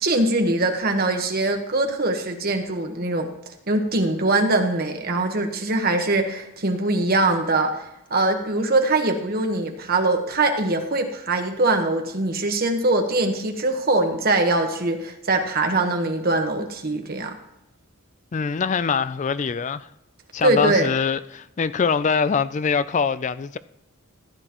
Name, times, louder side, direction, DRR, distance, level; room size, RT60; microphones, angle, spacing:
voice 1, 0.0-3.3 3.7-7.8 8.1-17.3 20.4-20.9, right 2 dB, 45° right, 1.2 m, -22 dB
voice 2, 18.3-19.9 20.3-23.6, left 5 dB, 35° left, 0.3 m, -23 dB
15.0 x 9.9 x 3.0 m
head